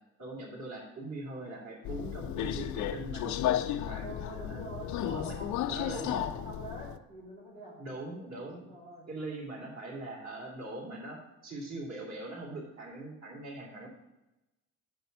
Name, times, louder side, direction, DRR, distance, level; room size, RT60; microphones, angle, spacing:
voice 1, 0.2-4.6 5.0-5.3 5.6-6.3 7.8-8.7 9.1-13.9, right 2 dB, 40° right, -2 dB, 3.1 m, -41 dB
Subway metro underground, 1.8-7.0, left 11 dB, 45° left, 0.6 m, -33 dB
voice 2, 4.0-8.0 8.5-9.1, right 1 dB, 80° right, -7 dB, 3.0 m, -46 dB
8.0 x 7.1 x 5.3 m, 0.98 s
figure-of-eight pair, 50°, 40 cm